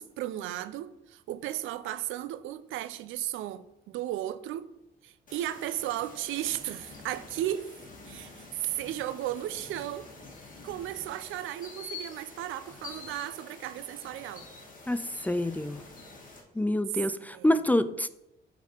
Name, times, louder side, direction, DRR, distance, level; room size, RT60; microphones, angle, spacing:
voice 1, 0.0-4.7 5.0-7.7 8.1-10.1 10.6-14.5 17.2-17.5, right 13 dB, 85° right, 0.5 m, -35 dB
sound 1, 5.3-16.4, left 3 dB, 40° left, 2.0 m, -47 dB
voice 2, 14.9-15.8 16.5-18.1, left 1 dB, 10° left, 0.3 m, -27 dB
8.5 x 4.2 x 4.4 m
cardioid pair, 90°, 20 cm